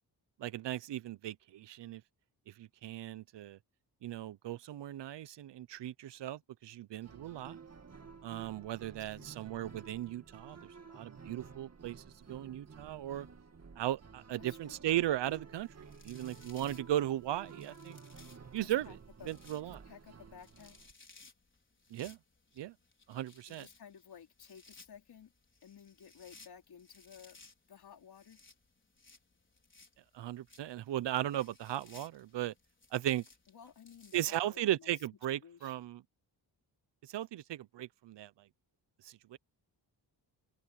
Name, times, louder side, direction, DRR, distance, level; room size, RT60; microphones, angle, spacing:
voice 1, 0.4-2.0 2.5-3.6 4.0-7.6 8.2-10.6 10.9-12.0 12.3-13.3 13.8-15.7 16.0-18.0 18.5-18.9 19.3-19.8 21.9-22.2 22.6-22.7 23.1-23.7 30.1-32.5 32.9-33.2 34.1-36.0 37.1-38.3 39.0-39.4, right 13 dB, 80° right, 0.8 m, -37 dB
sound 1, 7.0-20.9, right 5 dB, 40° right, 2.5 m, -53 dB
voice 2, 14.4-14.8 18.5-19.3 19.7-20.8 23.5-25.3 25.6-27.4 27.7-28.4 33.5-34.9 35.3-35.7, left 8 dB, 65° left, 3.6 m, -55 dB
sound 2, 15.5-34.7, left 3 dB, 30° left, 5.2 m, -62 dB
open air
cardioid pair, 105°, 41 cm